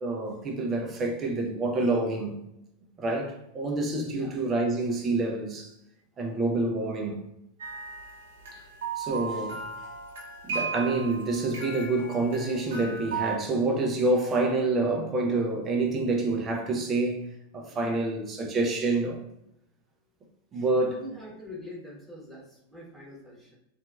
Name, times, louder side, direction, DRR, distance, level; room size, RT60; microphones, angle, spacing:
voice 1, 0.0-2.3 3.0-5.7 6.2-7.2 9.0-9.6 10.4-17.3 17.5-19.2 20.5-21.0, right 2 dB, 25° right, 0.5 m, -27 dB
voice 2, 4.0-4.4 20.8-23.5, left 1 dB, 5° right, 1.1 m, -44 dB
sound 1, 7.6-13.4, right 5 dB, 60° right, 0.7 m, -36 dB
2.7 x 2.5 x 2.3 m
figure-of-eight pair, 90°, 0 cm